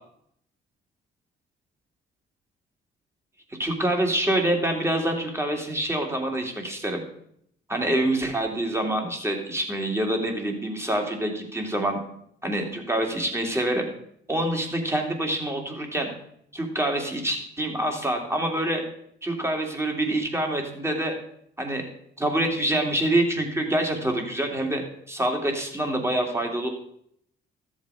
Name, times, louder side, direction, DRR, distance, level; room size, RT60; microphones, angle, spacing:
voice 1, 3.6-7.0 7.7-12.0 12.4-13.8 14.3-16.1 16.5-18.8 19.2-21.1 21.6-21.8 22.2-26.7, right 1 dB, 15° right, 2 dB, 2.7 m, -26 dB
13.5 x 7.3 x 5.0 m, 0.70 s
cardioid pair, 90°, 20 cm